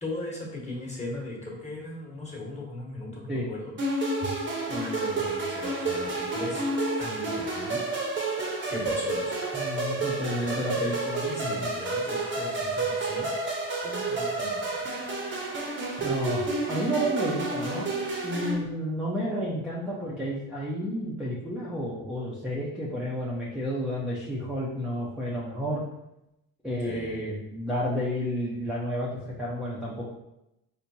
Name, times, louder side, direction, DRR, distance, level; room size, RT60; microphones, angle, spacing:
voice 1, 0.0-4.3 4.7-6.6 7.0-7.8 8.7-9.4 9.8-10.0 10.4-11.0 11.3-13.3 13.8-14.8 26.8-27.2, left 1 dB, 15° left, -3 dB, 1.4 m, -38 dB
sound 1, 3.8-18.5, right 2 dB, 30° right, 0.9 m, -30 dB
voice 2, 9.5-11.7 16.0-17.9 18.2-25.8 26.6-30.0, equal, ahead, -7 dB, 0.7 m, -31 dB
4.3 x 2.2 x 2.7 m, 0.88 s
supercardioid pair, 75°, 41 cm